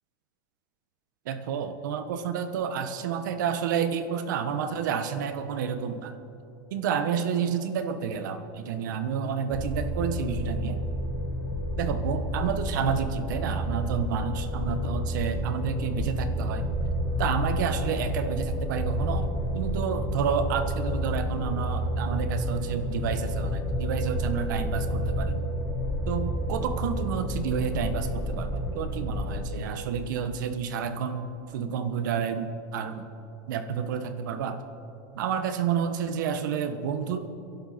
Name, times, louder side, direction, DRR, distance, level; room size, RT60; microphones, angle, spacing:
voice 1, 1.2-6.1 6.7-10.8 11.8-16.7 17.2-25.4 26.1-33.1 33.5-34.6 35.1-37.3, right 7 dB, 75° right, 9 dB, 1.3 m, -30 dB
sound 1, 9.5-29.4, equal, 5° left, 1.2 m, -30 dB
29.0 x 11.5 x 4.3 m, 2.9 s
supercardioid pair, 180°, 10 cm